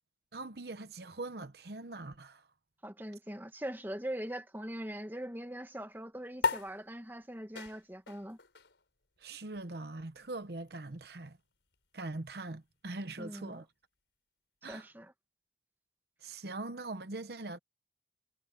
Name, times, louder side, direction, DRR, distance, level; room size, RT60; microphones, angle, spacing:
voice 1, 0.3-2.5 9.2-11.4 11.9-13.7 14.6-14.9 16.2-17.6, right 2 dB, 60° right, 0.9 m, -42 dB
voice 2, 2.8-8.4 13.2-13.6 14.7-15.1, right 1 dB, 10° right, 1.5 m, -41 dB
sound 1, 6.4-13.2, left 4 dB, 90° left, 5.3 m, -41 dB
head